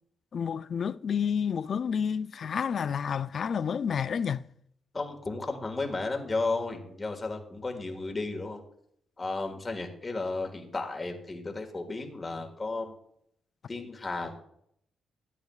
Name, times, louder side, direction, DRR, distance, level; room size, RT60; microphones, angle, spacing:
voice 1, 0.3-4.5, left 7 dB, 55° left, 0.3 m, -30 dB
voice 2, 4.9-8.6 9.2-12.9 13.7-14.4, left 3 dB, 30° left, 1.7 m, -33 dB
12.0 x 9.1 x 2.4 m
cardioid pair, 85°, 0 cm